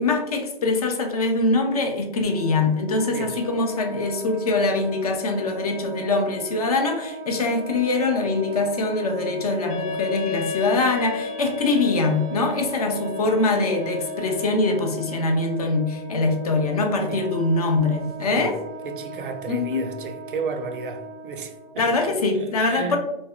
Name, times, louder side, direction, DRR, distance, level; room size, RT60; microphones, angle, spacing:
voice 1, 0.0-18.6 19.5-19.9 21.8-23.0, left 3 dB, 40° left, 0.4 m, -23 dB
Wind instrument woodwind instrument, 2.2-21.7, right 2 dB, 15° right, 0.6 m, -38 dB
Wind instrument woodwind instrument 2, 9.7-14.7, left 4 dB, 75° left, 1.2 m, -33 dB
voice 2, 18.2-18.5 18.8-23.0, right 4 dB, 60° right, 0.4 m, -33 dB
3.4 x 2.1 x 2.3 m
hypercardioid pair, 150°, 30 cm